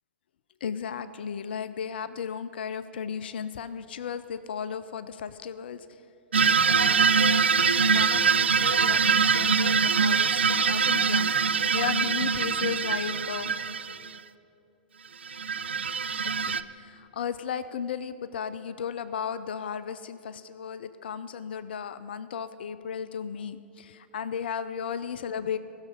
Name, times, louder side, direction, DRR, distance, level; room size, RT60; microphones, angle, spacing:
voice 1, 0.6-6.0 6.7-13.6 16.4-25.6, left 7 dB, 65° left, 13 dB, 0.4 m, -35 dB
sound 1, 6.3-14.2 15.3-16.6, right 5 dB, 80° right, 0.3 m, -23 dB
16.0 x 6.5 x 5.4 m, 2.7 s
figure-of-eight pair, 110°, 6 cm